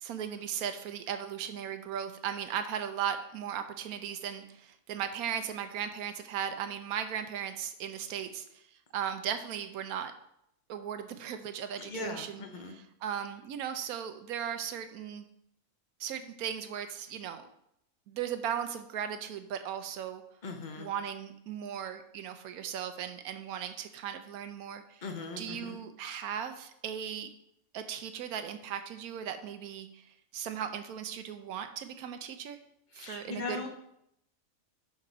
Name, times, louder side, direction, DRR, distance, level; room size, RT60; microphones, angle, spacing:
voice 1, 0.0-8.6 8.9-10.1 10.7-15.3 16.0-17.5 18.1-20.2 20.8-25.1 25.4-27.3 27.7-30.1 30.3-32.6 33.0-33.7, right 8 dB, 90° right, 8 dB, 1.1 m, -37 dB
voice 2, 11.8-12.7 20.4-20.9 25.0-25.7 32.9-33.7, left 3 dB, 35° left, 4 dB, 1.0 m, -39 dB
10.5 x 4.1 x 3.9 m, 0.76 s
omnidirectional pair, 1.5 m